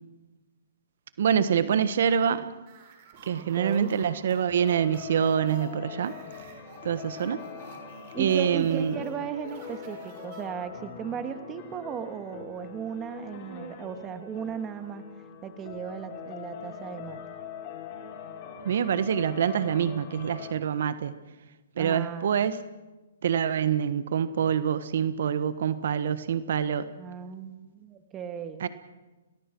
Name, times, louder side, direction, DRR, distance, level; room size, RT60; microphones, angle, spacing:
voice 1, 1.2-2.5 3.2-6.1 6.8-7.4 8.2-9.0 18.6-21.1 21.8-22.6 23.2-26.9 28.6-28.7, right 8 dB, 65° right, 12 dB, 1.3 m, -26 dB
sound 1, 2.6-10.9, right 6 dB, 40° right, 6.2 m, -51 dB
voice 2, 3.4-3.9 8.1-15.0 15.4-17.2 21.8-22.4 27.0-28.7, right 8 dB, 20° right, 8 dB, 2.0 m, -36 dB
sound 2, 4.6-20.5, left 7 dB, 35° left, 4.6 m, -43 dB
29.5 x 18.5 x 6.2 m, 1.1 s
hypercardioid pair, 145°, 0 cm